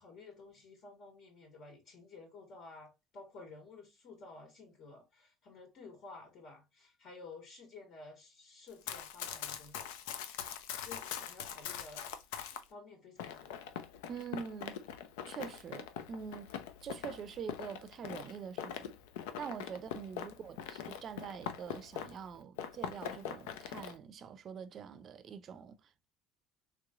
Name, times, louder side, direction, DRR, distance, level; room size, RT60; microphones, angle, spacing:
voice 1, 0.0-9.9 10.8-12.1 12.7-13.6, left 3 dB, 60° left, 1.6 m, -53 dB
Run, 8.7-12.6 13.2-22.3 22.6-23.9, left 9 dB, 85° left, 0.4 m, -43 dB
voice 2, 14.1-14.8 15.3-16.5 16.8-18.9 19.4-25.8, right 7 dB, 45° right, 0.5 m, -45 dB
3.3 x 3.0 x 2.4 m
supercardioid pair, 90°, 0 cm